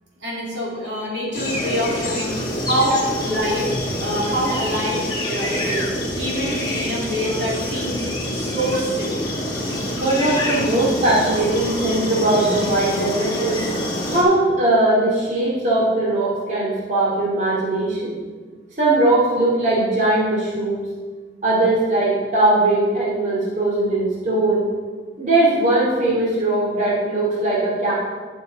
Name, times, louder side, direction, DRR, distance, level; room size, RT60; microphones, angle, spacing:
voice 1, 0.2-2.3 2.6-3.7 4.0-9.2, equal, 70° right, -5 dB, 2.7 m, -25 dB
sound 1, 1.3-14.2, left 1 dB, 25° left, 2.0 m, -26 dB
voice 2, 9.9-13.6 14.1-18.2 18.8-20.9 21.4-24.7 25.2-27.9, right 2 dB, 45° right, -6 dB, 2.5 m, -20 dB
12.0 x 6.5 x 4.0 m, 1.5 s
head